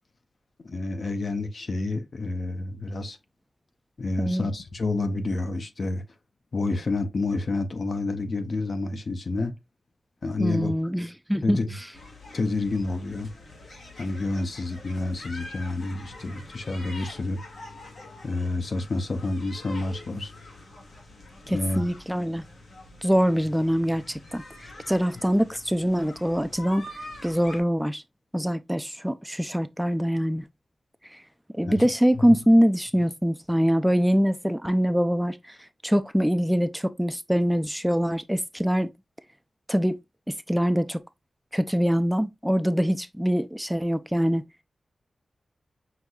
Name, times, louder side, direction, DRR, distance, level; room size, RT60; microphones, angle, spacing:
voice 1, 0.6-3.2 4.0-6.0 6.5-9.5 10.2-10.7 11.4-11.8 12.3-13.3 14.0-17.4 18.2-20.3 21.5-21.8 31.6-31.8 32.1-32.4, left 2 dB, 60° left, 0.7 m, -29 dB
voice 2, 4.2-4.5 10.4-11.6 21.5-22.4 23.0-26.9 27.2-28.0 28.3-30.4 31.1-31.2 31.5-38.9 39.7-40.0 40.3-41.0 41.5-44.5, equal, 5° right, 0.3 m, -24 dB
sound 1, 11.9-27.6, left 2 dB, 85° left, 1.9 m, -45 dB
5.9 x 2.6 x 2.3 m
cardioid pair, 65°, 0 cm